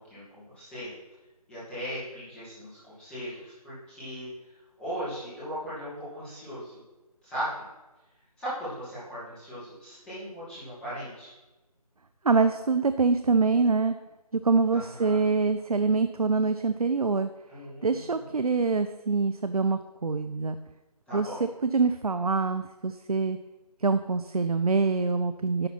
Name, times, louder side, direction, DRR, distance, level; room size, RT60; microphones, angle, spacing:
voice 1, 0.1-0.9 1.5-2.7 3.0-4.3 4.8-6.8 7.2-7.5 8.4-11.3 14.7-15.2 17.5-18.5 21.1-21.4, equal, 5° left, -12 dB, 2.2 m, -38 dB
voice 2, 12.2-13.9 14.4-17.3 17.8-20.6 21.1-23.4 23.8-25.7, right 4 dB, 70° right, 10 dB, 0.5 m, -25 dB
11.0 x 4.1 x 5.8 m, 1.1 s
figure-of-eight pair, 160°, 20 cm